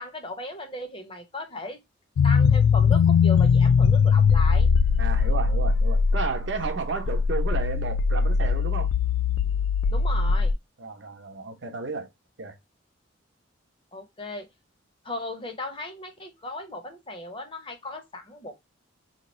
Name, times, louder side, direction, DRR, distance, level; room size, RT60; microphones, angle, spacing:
voice 1, 0.0-1.8 2.2-4.7 9.9-10.5 13.9-14.5 15.0-18.5, left 2 dB, 25° left, 0.7 m, -36 dB
sound 1, 2.2-10.5, left 5 dB, 85° left, 0.3 m, -21 dB
voice 2, 5.0-8.9 10.8-12.1 12.4-12.6, right 4 dB, 65° right, 0.8 m, -32 dB
2.9 x 2.4 x 4.1 m
head